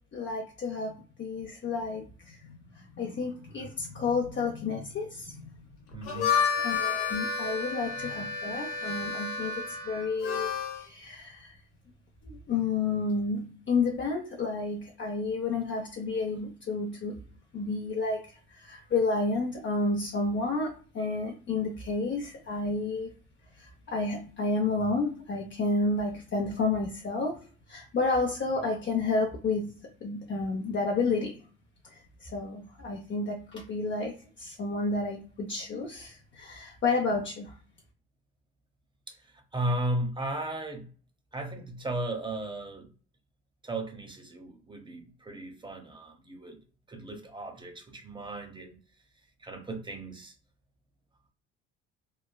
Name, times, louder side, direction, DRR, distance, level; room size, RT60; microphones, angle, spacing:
voice 1, 0.1-5.4 6.6-11.6 12.2-17.2 17.5-18.2 18.5-23.1 23.6-27.4 27.7-31.4 31.9-37.5, left 3 dB, 35° left, 0.7 m, -31 dB
Harmonica, 5.9-10.9, left 6 dB, 85° left, 0.9 m, -30 dB
voice 2, 5.9-6.3 39.1-39.2 39.5-40.9 41.3-42.9 43.6-46.6 46.9-48.8 49.4-50.3, right 1 dB, 15° right, 0.8 m, -35 dB
3.2 x 2.2 x 2.2 m
hypercardioid pair, 65°, 33 cm